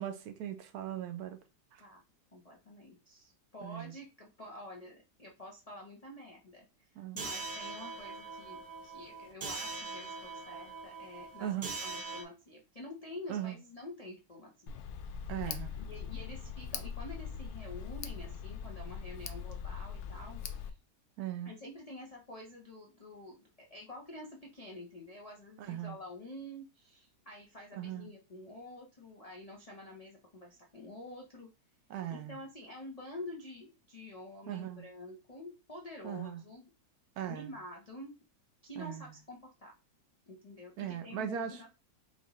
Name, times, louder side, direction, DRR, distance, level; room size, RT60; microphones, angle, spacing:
voice 1, 0.0-1.4 1.7-1.8 3.6-3.9 7.0-7.2 11.4-11.7 13.3-13.6 15.3-15.7 21.2-21.5 25.6-26.0 27.8-28.1 31.9-32.4 34.5-34.9 36.0-36.4 37.2-37.5 38.8-39.1 40.8-41.7, right 10 dB, 70° right, 8 dB, 1.0 m, -39 dB
voice 2, 2.3-11.5 11.8-14.8 15.4-20.8 21.4-31.5 32.1-36.6 37.3-38.1 38.6-39.7 40.3-41.7, left 1 dB, 40° left, -2 dB, 0.5 m, -48 dB
sound 1, 7.2-12.2, right 3 dB, 85° right, 0.3 m, -42 dB
Tick, 14.7-20.7, left 7 dB, 70° left, 0.9 m, -41 dB
5.5 x 2.5 x 3.0 m, 0.29 s
omnidirectional pair, 2.0 m